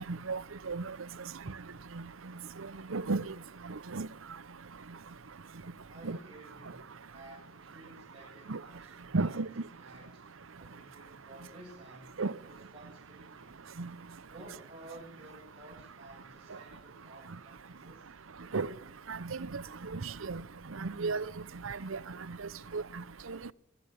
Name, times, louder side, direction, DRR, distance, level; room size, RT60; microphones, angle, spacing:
voice 1, 0.1-0.4 0.7-0.8 2.9-3.3 3.9-4.1 6.0-6.2 8.5-8.6 9.1-9.5 12.2-12.3 13.8-13.9 18.5-18.7 19.1-19.2 19.5-19.6 19.9-20.0 20.3-20.4 20.8-21.2 21.6-22.0 22.7-22.8 23.3-23.5, right 3 dB, 90° right, 0.8 m, -32 dB
voice 2, 5.8-9.5 9.7-10.3 10.6-13.6 14.2-18.1, right 1 dB, 25° right, 6.6 m, -53 dB
22.5 x 13.5 x 9.7 m
head